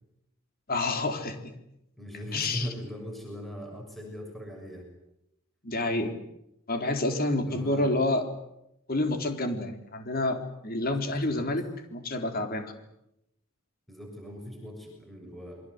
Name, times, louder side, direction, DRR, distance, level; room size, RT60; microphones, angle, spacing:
voice 1, 0.7-1.5 2.3-2.7 5.6-6.2 6.7-8.3 8.9-11.6 11.9-12.7, left 2 dB, 45° left, 6 dB, 4.0 m, -28 dB
voice 2, 2.0-4.9 7.4-7.9 10.9-11.4 13.9-15.6, equal, ahead, 1 dB, 6.7 m, -40 dB
28.0 x 23.5 x 8.1 m, 0.83 s
head